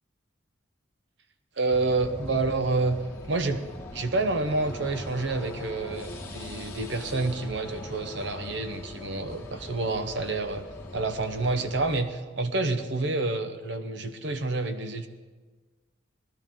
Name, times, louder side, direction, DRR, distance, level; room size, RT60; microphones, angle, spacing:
voice 1, 1.6-3.0 3.3-3.7 3.9-10.6 10.9-15.1, right 3 dB, 60° right, 8 dB, 0.9 m, -28 dB
sound 1, 1.7-12.0, left 2 dB, 15° left, 1.4 m, -41 dB
18.5 x 12.0 x 3.7 m, 1.4 s
head